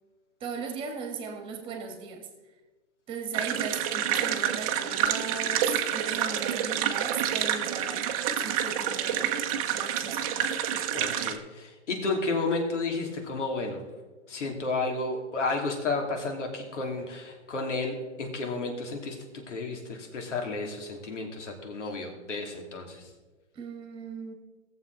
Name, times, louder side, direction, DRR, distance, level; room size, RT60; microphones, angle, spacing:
voice 1, 0.4-2.3 3.1-8.0 8.3-9.3 9.7-10.4 23.5-24.3, right 5 dB, 15° right, 4 dB, 1.6 m, -37 dB
sound 1, 3.3-11.4, right 9 dB, 30° right, 0.8 m, -28 dB
voice 2, 10.9-13.8 14.3-19.2 19.5-23.1, left 3 dB, 75° left, 2 dB, 2.9 m, -32 dB
17.5 x 7.4 x 4.0 m, 1.2 s
hypercardioid pair, 150°, 36 cm